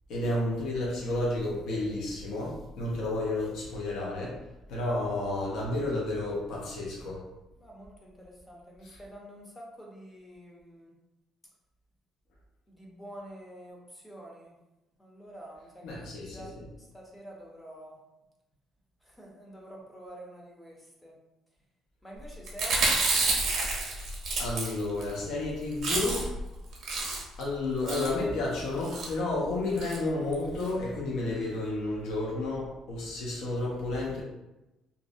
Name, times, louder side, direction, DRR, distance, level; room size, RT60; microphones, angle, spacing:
voice 1, 0.1-4.4 4.7-7.2 8.8-9.0 15.8-16.7 24.4-26.3 27.4-34.2, left 2 dB, 65° left, -4 dB, 0.6 m, -31 dB
voice 2, 9.1-9.4 10.1-10.5 13.0-13.8 14.0-14.3 15.2-15.6 16.3-16.5 17.1-17.3 17.6-17.9 19.2-19.3 19.5-19.7 19.9-20.3 20.6-20.7 22.0-22.2 22.5-23.0, right 1 dB, 10° left, -2 dB, 0.5 m, -45 dB
Chewing mastication, 22.5-25.1 25.4-25.5 25.7-26.4 26.7-27.4 27.9-28.2 28.8-29.1 29.8-30.0 30.3-30.4 30.6-30.7, right 3 dB, 55° right, 0.6 m, -29 dB
2.5 x 2.0 x 2.5 m, 0.98 s
cardioid pair, 145°, 0 cm